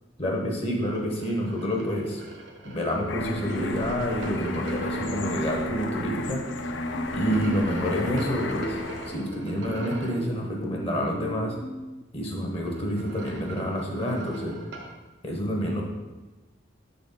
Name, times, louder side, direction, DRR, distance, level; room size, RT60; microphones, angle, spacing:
voice 1, 0.2-2.2 2.6-6.4 7.1-8.8 9.1-11.6 12.1-14.6 15.2-15.8, equal, 30° left, 0 dB, 0.9 m, -28 dB
sound 1, 0.9-5.4 7.0-10.3 12.4-15.0, right 2 dB, 70° right, 1.0 m, -41 dB
sound 2, 3.1-9.3, left 1 dB, 70° left, 0.6 m, -32 dB
sound 3, 6.9-12.0, equal, 15° left, 0.3 m, -39 dB
6.6 x 4.0 x 5.5 m, 1.2 s
head